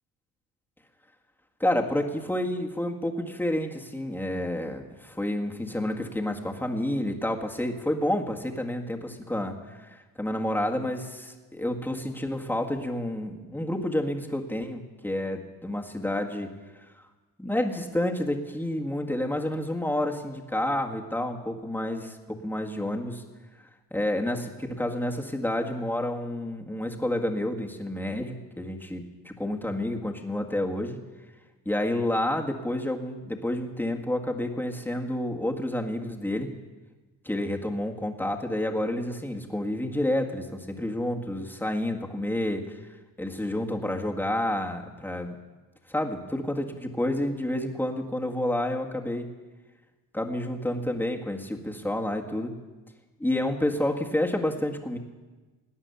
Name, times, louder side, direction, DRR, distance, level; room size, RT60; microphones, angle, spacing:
voice 1, 1.6-16.5 17.4-23.2 23.9-31.0 31.7-36.5 37.2-42.8 43.2-45.4 45.9-49.3 50.1-52.5 53.2-55.0, left 1 dB, 5° left, 2 dB, 1.8 m, -29 dB
18.5 x 9.7 x 7.0 m, 1.3 s
cardioid pair, 90°, 36 cm